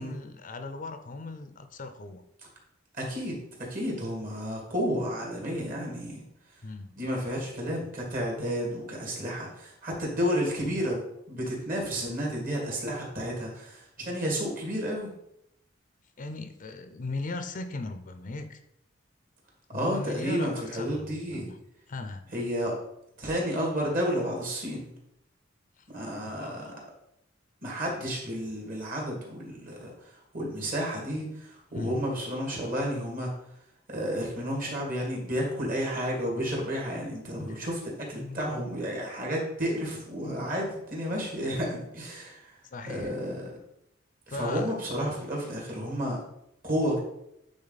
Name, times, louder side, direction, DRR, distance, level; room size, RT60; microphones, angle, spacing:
voice 1, 0.0-2.2 6.6-6.9 16.2-18.6 19.7-21.6 21.9-22.2 25.8-25.9 26.3-26.7 31.7-32.0 37.4-37.6 38.2-38.4 42.7-43.1 44.3-44.7, left 3 dB, 45° left, 8 dB, 0.5 m, -38 dB
voice 2, 3.0-6.2 6.9-11.0 11.3-15.1 19.7-21.5 22.3-22.8 23.2-24.9 25.9-26.7 27.6-33.3 33.9-42.5 42.9-43.5 44.3-46.2 46.6-47.0, equal, 50° right, -2 dB, 2.3 m, -31 dB
8.8 x 3.9 x 4.0 m, 0.80 s
head